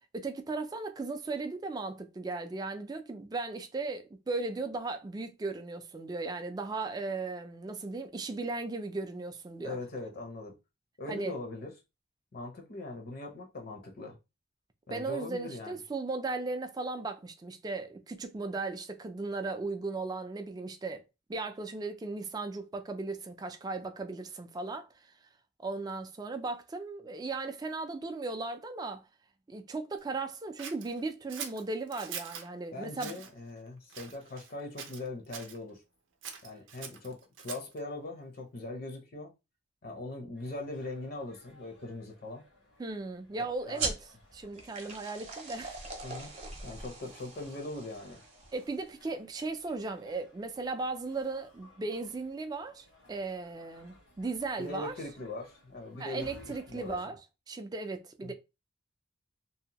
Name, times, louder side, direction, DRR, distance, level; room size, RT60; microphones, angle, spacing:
voice 1, 0.1-9.8 11.1-11.3 14.9-21.0 21.3-24.9 25.6-29.0 29.5-33.1 42.8-45.8 48.5-55.0 56.0-57.2 57.5-58.3, right 3 dB, 20° right, 0.3 m, -37 dB
voice 2, 9.6-10.5 11.0-11.7 12.3-14.2 14.9-15.8 32.7-35.8 36.4-39.3 39.8-42.4 43.3-43.9 46.0-46.3 46.6-48.2 54.6-56.3 56.7-57.1 58.2-58.3, left 2 dB, 50° left, 0.6 m, -41 dB
Scissors, 30.6-32.5 32.9-33.3 33.9-34.5 34.8-35.6 36.2-37.8, right 7 dB, 85° right, 0.5 m, -43 dB
sound 1, 40.4-57.0, left 2 dB, 85° left, 1.2 m, -59 dB
sound 2, 43.8-48.8, right 4 dB, 35° right, 0.7 m, -40 dB
2.7 x 2.1 x 2.8 m
head